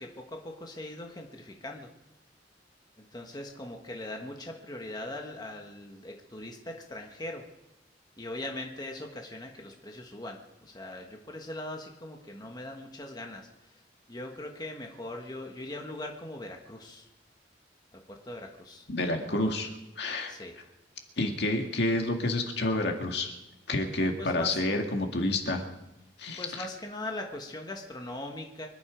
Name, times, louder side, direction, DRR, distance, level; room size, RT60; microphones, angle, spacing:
voice 1, 0.0-1.9 3.0-7.4 8.2-13.8 14.1-17.1 17.9-19.5 20.3-20.6 24.2-24.6 26.4-28.7, left 1 dB, 20° left, 2 dB, 1.5 m, -40 dB
voice 2, 18.9-19.7 20.0-20.3 21.2-23.4 23.7-25.6 26.2-26.7, left 2 dB, 60° left, 3 dB, 2.1 m, -29 dB
25.0 x 11.0 x 5.1 m, 0.93 s
head